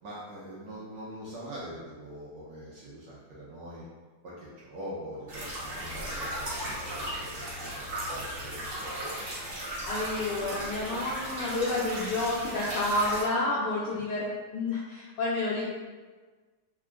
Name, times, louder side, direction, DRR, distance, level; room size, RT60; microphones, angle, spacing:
voice 1, 0.0-3.8 4.2-8.9 13.8-14.1, equal, 70° right, -7 dB, 1.1 m, -43 dB
sound 1, 5.3-13.2, right 1 dB, 50° right, 0.6 m, -36 dB
voice 2, 9.9-14.3 14.5-15.7, left 2 dB, 80° left, -6 dB, 0.9 m, -30 dB
3.6 x 2.4 x 2.3 m, 1.4 s
omnidirectional pair, 2.4 m